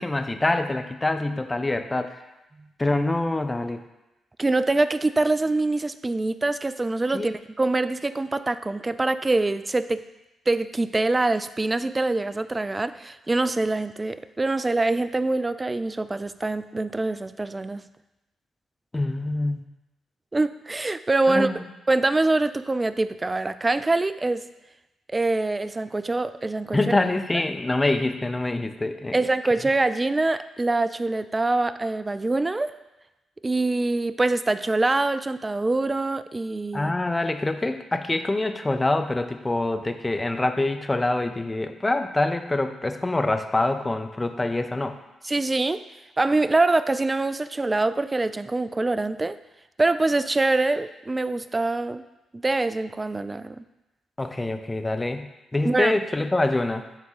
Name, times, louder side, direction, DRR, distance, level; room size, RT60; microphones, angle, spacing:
voice 1, 0.0-2.2 2.8-3.8 7.1-7.3 18.9-19.6 21.3-21.7 26.7-29.2 36.7-44.9 54.2-55.3 55.5-56.8, left 2 dB, 20° left, 8 dB, 0.6 m, -25 dB
voice 2, 4.4-10.0 10.5-17.8 20.3-21.5 21.9-24.4 25.1-26.8 29.1-32.8 33.4-36.9 45.2-45.8 46.2-49.4 49.8-52.0 52.4-53.6 55.6-56.0, right 2 dB, 25° right, 13 dB, 0.3 m, -24 dB
7.1 x 3.6 x 4.0 m, 0.98 s
hypercardioid pair, 45°, 0 cm